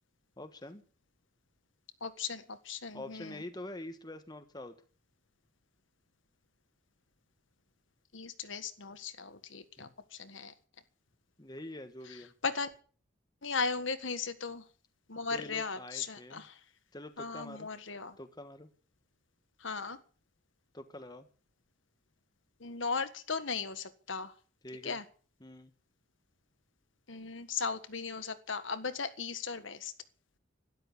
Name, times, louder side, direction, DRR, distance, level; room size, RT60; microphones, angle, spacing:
voice 1, 0.4-0.8 2.9-4.8 9.8-9.9 11.4-12.3 15.3-16.5 16.9-17.7 18.2-18.7 20.7-21.3 24.6-25.0 25.4-25.7, left 1 dB, 20° left, 9 dB, 1.4 m, -45 dB
voice 2, 2.0-3.4 8.1-10.5 12.4-12.7 13.4-14.6 15.1-16.6 17.2-18.2 19.6-20.0 22.6-24.3 24.8-25.0 27.1-29.9, left 5 dB, 75° left, 10 dB, 1.6 m, -37 dB
13.0 x 12.0 x 8.4 m, 0.42 s
head